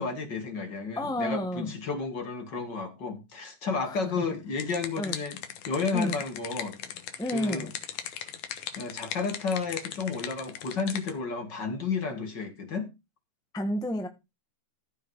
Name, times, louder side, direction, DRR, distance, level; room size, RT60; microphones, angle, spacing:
voice 1, 0.0-5.4 5.7-6.8 7.3-7.7 8.8-12.9, left 4 dB, 40° left, 2.3 m, -32 dB
voice 2, 0.9-1.7 3.8-4.2 5.0-5.2 5.9-6.2 7.2-7.7 13.5-14.1, left 1 dB, 5° left, 0.4 m, -31 dB
sound 1, 4.3-11.1, left 9 dB, 80° left, 2.6 m, -39 dB
14.5 x 5.5 x 4.7 m
omnidirectional pair, 3.4 m